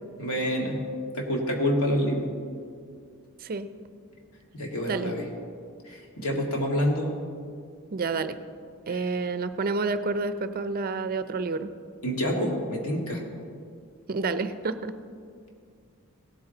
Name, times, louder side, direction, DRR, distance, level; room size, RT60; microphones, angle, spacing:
voice 1, 0.2-0.8 1.1-2.3 4.5-5.3 5.8-7.1 8.9-9.1 12.0-13.2, equal, 80° left, 0 dB, 2.0 m, -27 dB
voice 2, 7.9-8.4 8.9-11.7 14.1-14.9, right 3 dB, 45° right, 12 dB, 0.5 m, -29 dB
17.0 x 8.4 x 3.9 m, 2.2 s
head